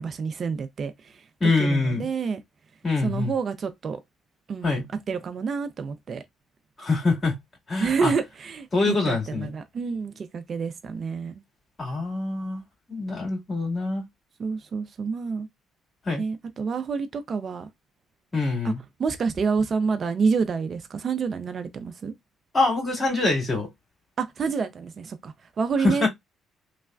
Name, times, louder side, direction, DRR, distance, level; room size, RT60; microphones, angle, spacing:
voice 1, 0.0-2.4 3.0-4.0 4.5-6.2 7.8-11.3 14.4-15.5 16.2-17.7 18.6-18.7 19.0-22.1 24.2-26.1, right 5 dB, 50° right, 0.4 m, -28 dB
voice 2, 1.4-2.1 2.8-3.3 4.6-4.8 6.8-7.4 7.7-8.1 8.7-9.5 11.8-12.6 12.9-14.0 16.1-16.2 18.3-18.8 22.5-23.7 25.8-26.1, left 3 dB, 35° left, 2.0 m, -24 dB
3.2 x 2.1 x 2.4 m
supercardioid pair, 65°, 0 cm